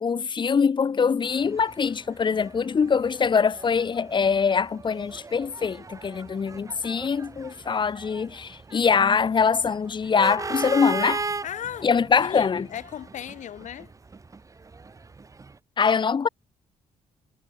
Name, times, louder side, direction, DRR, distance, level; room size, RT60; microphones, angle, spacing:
voice 1, 0.0-11.3 11.8-12.7 15.8-16.3, left 6 dB, 35° left, 1.0 m, -23 dB
sound 1, 1.2-15.6, right 4 dB, 25° right, 1.4 m, -38 dB
voice 2, 11.4-11.9 12.2-13.9, left 10 dB, 70° left, 3.9 m, -36 dB
cardioid pair, 90°, 13 cm